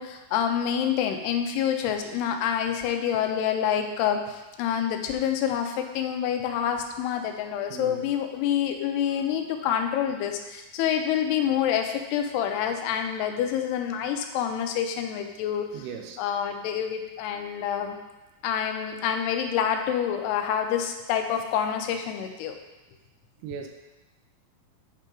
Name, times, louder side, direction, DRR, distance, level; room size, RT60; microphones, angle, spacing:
voice 1, 0.0-15.7 16.2-18.0 18.4-22.6, left 9 dB, 85° left, 5 dB, 2.7 m, -27 dB
voice 2, 7.7-8.1 9.0-9.3 15.7-16.2 23.4-23.7, right 7 dB, 80° right, 4 dB, 2.6 m, -39 dB
8.5 x 5.2 x 3.7 m, 1.1 s
omnidirectional pair, 4.6 m